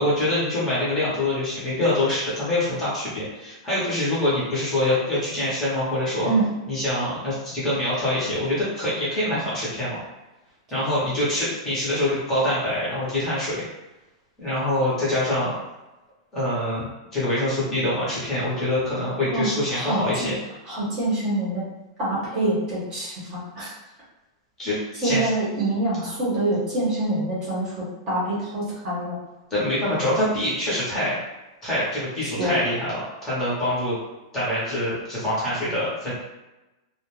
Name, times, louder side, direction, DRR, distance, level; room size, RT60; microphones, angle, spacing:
voice 1, 0.0-6.3 6.7-10.0 10.7-13.7 14.4-15.6 16.3-16.9 17.1-20.3 24.6-25.3 29.5-31.2 31.6-34.0 34.3-36.1, left 1 dB, 15° left, -9 dB, 0.8 m, -25 dB
voice 2, 19.3-20.3 20.7-21.6 22.0-23.7 24.9-29.2 32.4-32.6, right 2 dB, 25° right, -7 dB, 0.8 m, -25 dB
2.4 x 2.1 x 3.0 m, 1.0 s
supercardioid pair, 175°, 3 cm